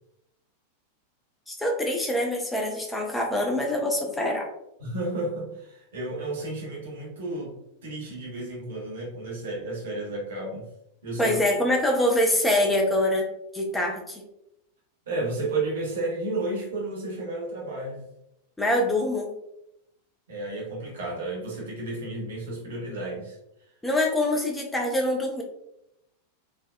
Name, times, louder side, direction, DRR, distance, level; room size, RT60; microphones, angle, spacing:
voice 1, 1.5-4.5 11.2-13.3 13.5-14.2 18.6-19.3 23.8-25.4, left 1 dB, 5° left, 1 dB, 0.6 m, -24 dB
voice 2, 4.8-10.6 11.0-11.4 15.1-18.0 20.3-23.4, right 2 dB, 60° right, -2 dB, 1.0 m, -32 dB
3.3 x 2.2 x 2.2 m, 0.82 s
figure-of-eight pair, 90°, 0 cm